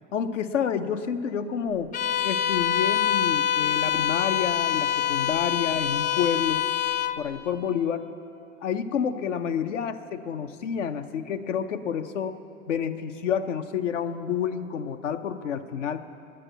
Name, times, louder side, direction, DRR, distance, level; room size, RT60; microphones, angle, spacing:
voice 1, 0.1-1.9 2.2-6.7 7.2-8.1 8.6-12.4 12.7-16.0, left 7 dB, 80° left, 8 dB, 0.8 m, -29 dB
Bowed string instrument, 1.9-7.2, left 10 dB, 25° left, 0.4 m, -25 dB
10.0 x 8.7 x 9.2 m, 2.7 s
hypercardioid pair, 90°, 36 cm